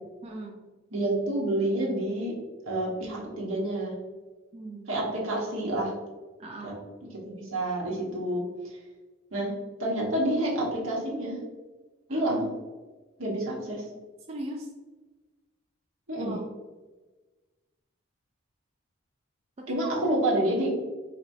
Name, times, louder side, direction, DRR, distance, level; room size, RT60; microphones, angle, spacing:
voice 1, 0.2-0.6 4.5-4.9 6.4-6.8 12.1-12.2 14.3-14.7 16.2-16.4 19.6-20.2, right 1 dB, 30° right, 1 dB, 0.3 m, -39 dB
voice 2, 0.9-2.3 2.6-3.9 4.9-5.9 6.6-6.7 7.1-8.8 9.3-9.5 9.8-11.4 12.1-12.5 13.2-13.8 16.1-16.3 19.7-20.8, right 1 dB, 80° right, -3 dB, 1.2 m, -28 dB
4.3 x 3.0 x 2.6 m, 1.2 s
head